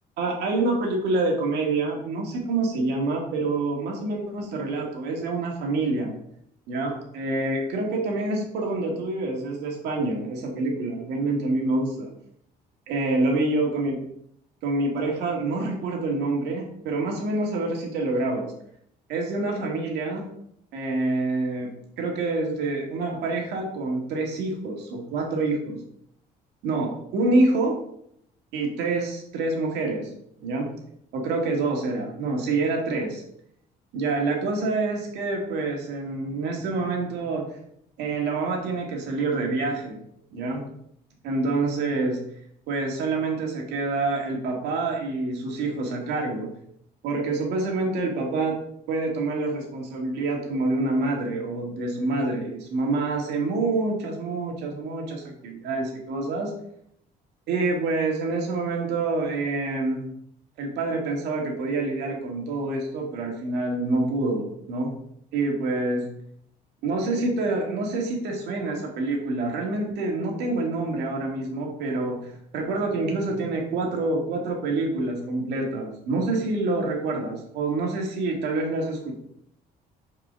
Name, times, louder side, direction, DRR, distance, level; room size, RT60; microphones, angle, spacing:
voice 1, 0.2-6.1 6.7-12.1 12.9-14.0 14.6-18.5 19.1-20.3 20.7-21.7 22.0-25.8 26.6-27.8 28.5-30.1 30.4-30.7 31.1-33.2 33.9-37.5 38.0-40.0 40.3-40.7 41.2-42.2 42.7-46.5 47.0-48.6 48.9-56.5 57.5-60.0 60.6-64.9 65.3-66.0 66.8-79.1, right 2 dB, 80° right, 1 dB, 2.3 m, -27 dB
5.4 x 5.0 x 6.4 m, 0.71 s
cardioid pair, 110°, 17 cm